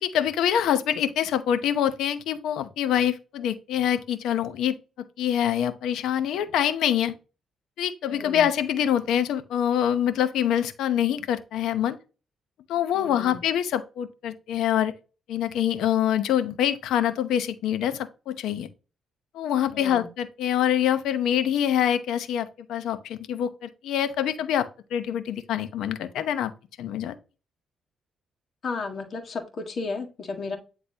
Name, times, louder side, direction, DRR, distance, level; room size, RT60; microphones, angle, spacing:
voice 1, 0.0-4.8 5.2-7.1 7.8-12.0 12.7-14.9 15.3-18.7 19.3-24.7 24.9-26.5 26.8-27.1, left 10 dB, 80° left, 0.8 m, -25 dB
voice 2, 8.1-8.5 12.9-13.4 19.7-20.1 28.6-30.6, left 4 dB, 50° left, 1.8 m, -33 dB
9.7 x 3.9 x 2.8 m
cardioid pair, 90°, 0 cm